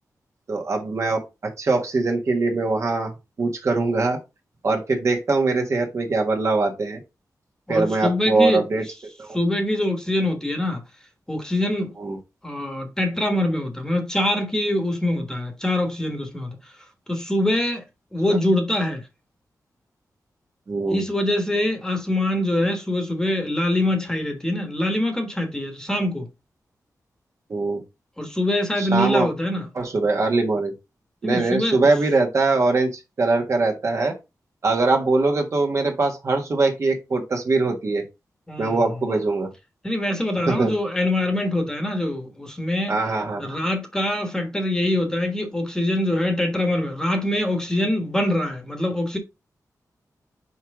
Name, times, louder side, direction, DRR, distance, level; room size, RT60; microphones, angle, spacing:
voice 1, 0.5-1.2 1.6-3.1 3.4-4.2 4.6-7.0 7.7-8.8 9.2-9.4 12.0-12.2 20.7-21.0 27.5-27.8 28.8-29.3 29.7-30.7 31.2-34.2 34.6-38.0 38.6-39.5 40.5-40.7 42.9-43.6, right 3 dB, 50° right, 1.4 m, -22 dB
voice 2, 7.7-8.6 9.3-10.8 11.3-11.9 12.4-16.7 17.1-17.8 18.1-19.1 20.9-26.3 28.2-29.7 31.2-31.8 38.5-38.8 39.8-43.0 43.4-49.2, left 1 dB, 10° left, 1.3 m, -24 dB
5.6 x 4.7 x 3.6 m
wide cardioid pair, 155°, 7 cm